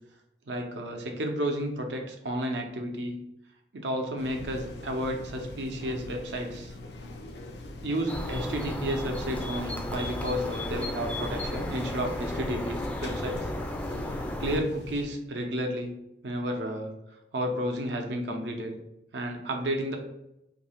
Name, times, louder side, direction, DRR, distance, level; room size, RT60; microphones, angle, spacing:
voice 1, 0.5-3.2 3.7-6.7 7.8-13.5 14.0-15.9 16.2-16.9 17.3-18.8 19.1-20.0, equal, 90° right, 3 dB, 0.7 m, -32 dB
sound 1, 4.2-15.0, left 1 dB, 70° left, 0.5 m, -43 dB
sound 2, 8.1-14.6, left 1 dB, 10° left, 0.3 m, -34 dB
2.7 x 2.6 x 4.3 m, 0.85 s
head